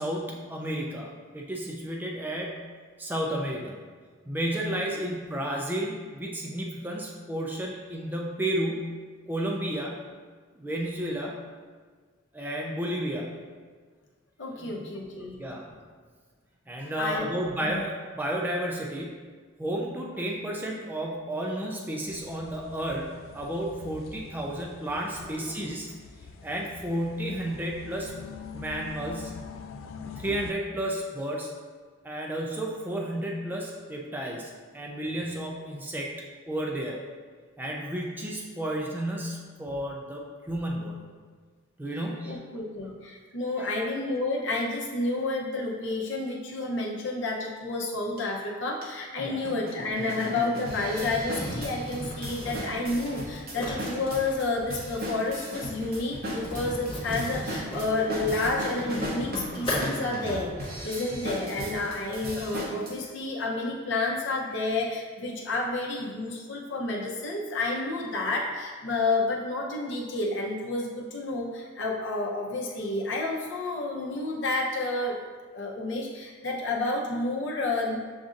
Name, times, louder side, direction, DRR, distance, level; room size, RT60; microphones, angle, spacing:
voice 1, 0.0-2.6 3.0-3.8 4.3-9.0 9.3-9.9 10.6-11.3 12.3-13.4 14.6-15.0 15.4-15.6 16.7-19.2 19.6-25.9 26.4-28.1 28.5-29.3 30.2-31.5 32.0-36.1 36.5-37.0 37.6-41.1 41.8-42.4 43.6-43.7 49.2-49.4, right 1 dB, 10° right, -1 dB, 0.3 m, -32 dB
voice 2, 14.4-15.4 17.0-17.2 17.6-17.8 25.2-25.5 42.3-75.2 75.5-78.0, left 2 dB, 60° left, -2 dB, 0.7 m, -30 dB
sound 1, 22.1-30.5, left 5 dB, 80° left, 0.3 m, -44 dB
sound 2, 48.2-48.3 48.8-48.9 49.5-62.9, equal, 50° right, 0.8 m, -36 dB
sound 3, 50.9-60.3, equal, 25° left, 1.3 m, -37 dB
7.0 x 2.6 x 2.5 m, 1.5 s
head